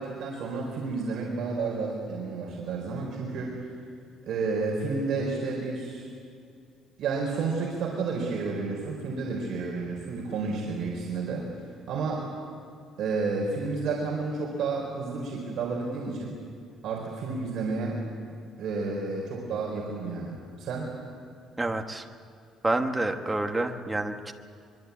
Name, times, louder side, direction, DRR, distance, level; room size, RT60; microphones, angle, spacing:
voice 1, 0.0-3.7 4.2-6.1 7.0-11.5 11.9-12.3 13.0-16.3 16.8-18.0 18.6-20.9, right 4 dB, 50° right, -2 dB, 4.3 m, -31 dB
voice 2, 21.6-22.1 22.6-24.3, right 2 dB, 10° right, 4 dB, 1.2 m, -28 dB
24.0 x 23.5 x 8.5 m, 2.4 s
cardioid pair, 180°, 0 cm